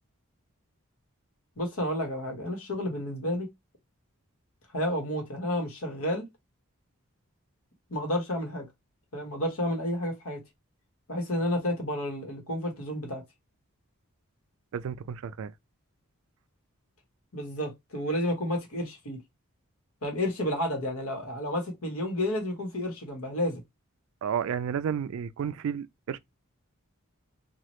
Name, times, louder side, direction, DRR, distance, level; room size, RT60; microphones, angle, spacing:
voice 1, 1.6-3.5 4.7-6.3 7.9-8.7 9.1-10.4 11.1-13.2 17.3-19.2 20.0-23.6, left 1 dB, 75° left, 1.3 m, -31 dB
voice 2, 14.7-15.5 24.2-26.2, right 8 dB, 65° right, 0.3 m, -32 dB
2.9 x 2.4 x 3.0 m
head